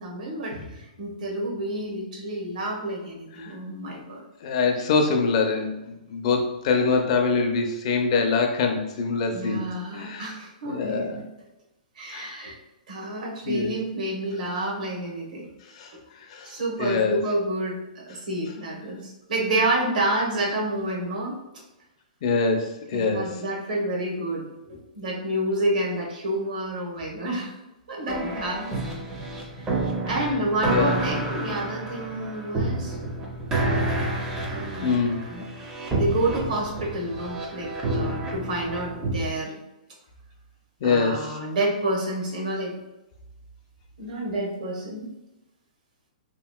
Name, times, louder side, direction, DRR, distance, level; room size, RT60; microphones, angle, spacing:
voice 1, 0.0-4.2 9.3-11.2 12.0-12.6 12.9-15.4 15.9-16.0 16.4-21.4 22.9-27.5 27.9-28.7 30.1-33.0 34.5-35.5 35.9-39.5 40.8-42.8 44.0-45.1, right 1 dB, 70° right, -2 dB, 1.0 m, -29 dB
voice 2, 4.4-9.7 9.9-10.3 10.7-11.2 12.1-12.4 13.5-13.7 15.8-15.9 16.3-16.5 16.8-17.2 22.2-23.3 30.1-30.3 30.7-31.0 34.8-35.2 40.8-41.4, left 4 dB, 45° left, 3 dB, 0.4 m, -24 dB
sound 1, 28.1-39.3, right 2 dB, 15° right, 0.4 m, -29 dB
2.9 x 2.7 x 2.2 m, 0.96 s
hypercardioid pair, 160°, 4 cm